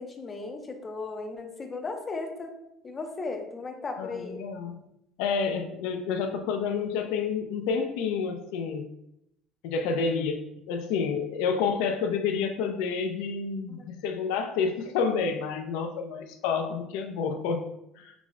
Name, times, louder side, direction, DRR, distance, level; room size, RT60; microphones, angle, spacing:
voice 1, 0.0-2.5 2.8-4.4 13.7-13.9, left 3 dB, 20° left, 4 dB, 0.4 m, -36 dB
voice 2, 4.0-4.8 5.2-8.8 9.6-17.6 18.0-18.1, left 5 dB, 90° left, 5 dB, 0.4 m, -29 dB
5.9 x 2.0 x 2.4 m, 0.81 s
cardioid pair, 175°, 0 cm